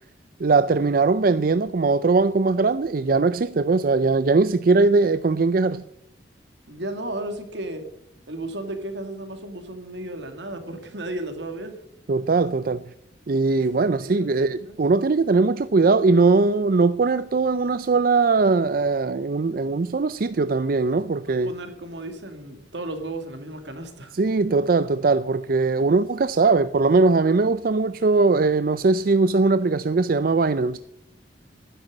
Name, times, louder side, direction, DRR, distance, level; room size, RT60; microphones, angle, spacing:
voice 1, 0.4-5.8 12.1-12.9 13.3-21.5 24.1-30.8, right 3 dB, 50° right, 0.5 m, -20 dB
voice 2, 6.7-7.9 8.3-11.8 13.6-13.7 14.0-14.3 14.6-14.8 21.2-24.1, right 1 dB, 75° right, 2.5 m, -34 dB
12.0 x 10.0 x 8.6 m
head